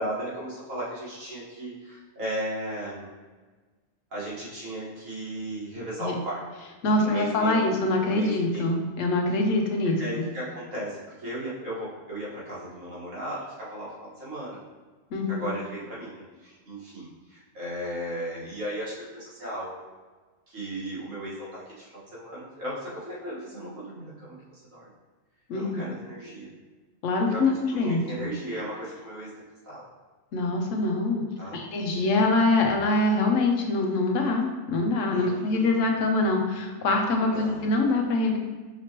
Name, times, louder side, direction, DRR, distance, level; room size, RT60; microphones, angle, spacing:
voice 1, 0.0-3.1 4.1-6.4 7.0-8.6 10.0-14.6 15.3-19.8 20.5-24.9 25.5-26.5 27.3-29.3 29.6-29.8 31.4-31.7 35.1-35.8 37.2-37.7, right 1 dB, 85° right, -8 dB, 2.0 m, -36 dB
voice 2, 6.8-10.2 15.1-15.5 25.5-25.8 27.0-28.3 30.3-31.2 31.5-38.4, left 2 dB, 75° left, 2 dB, 1.1 m, -24 dB
5.7 x 3.0 x 2.9 m, 1.3 s
omnidirectional pair, 1.3 m